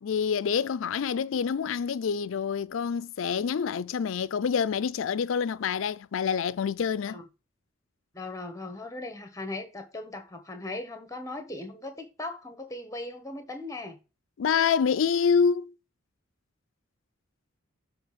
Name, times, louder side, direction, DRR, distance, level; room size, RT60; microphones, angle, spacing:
voice 1, 0.0-7.2 14.4-15.7, left 6 dB, 75° left, 0.4 m, -27 dB
voice 2, 8.1-14.0, left 2 dB, 15° left, 1.3 m, -38 dB
7.0 x 3.4 x 5.8 m
head